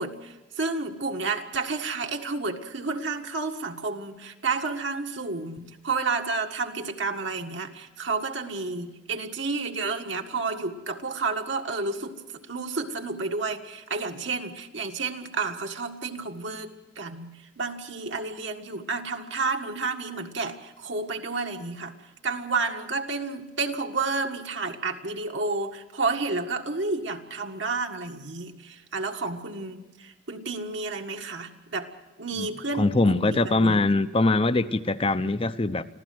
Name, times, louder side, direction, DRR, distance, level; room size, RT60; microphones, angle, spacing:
voice 1, 0.0-12.2 12.5-16.7 17.0-21.9 22.2-31.9 32.2-33.8, right 3 dB, 65° right, 3 dB, 1.7 m, -31 dB
voice 2, 32.8-35.9, left 2 dB, 30° left, 13 dB, 0.7 m, -22 dB
26.0 x 15.5 x 7.7 m, 1.1 s
head